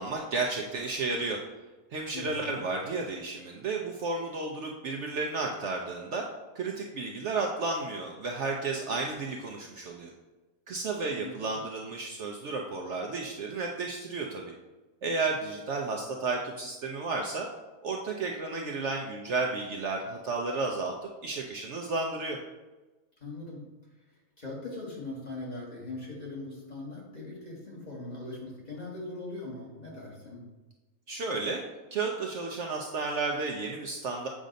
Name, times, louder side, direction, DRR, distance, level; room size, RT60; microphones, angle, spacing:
voice 1, 0.0-1.4 1.9-6.2 6.5-10.1 10.7-14.5 15.0-17.5 17.8-20.9 21.2-22.4 31.1-31.6 31.9-34.3, right 3 dB, 65° right, 1 dB, 0.8 m, -32 dB
voice 2, 2.1-2.6 11.2-11.3 23.2-23.6 24.4-30.4, left 2 dB, 30° left, -4 dB, 1.4 m, -40 dB
7.4 x 2.6 x 5.0 m, 1.1 s
omnidirectional pair, 1.5 m